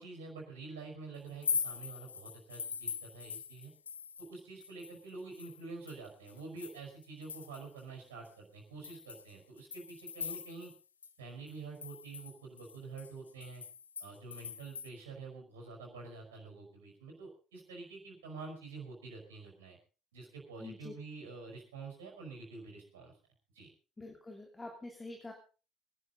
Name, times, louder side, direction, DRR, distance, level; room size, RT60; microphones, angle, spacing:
voice 1, 0.0-3.7 4.2-10.7 11.2-13.6 14.0-19.8 20.1-23.1 23.5-23.7, right 3 dB, 75° right, 1 dB, 5.1 m, -47 dB
sound 1, 1.3-4.3 4.6-7.8 8.2-8.3 8.8-10.8 11.0-11.1 11.5-14.9, left 6 dB, 85° left, 0.7 m, -41 dB
voice 2, 20.6-20.9 24.0-25.3, left 2 dB, 20° left, 2 dB, 3.1 m, -46 dB
23.0 x 11.0 x 3.9 m, 0.35 s
figure-of-eight pair, 55°, 0 cm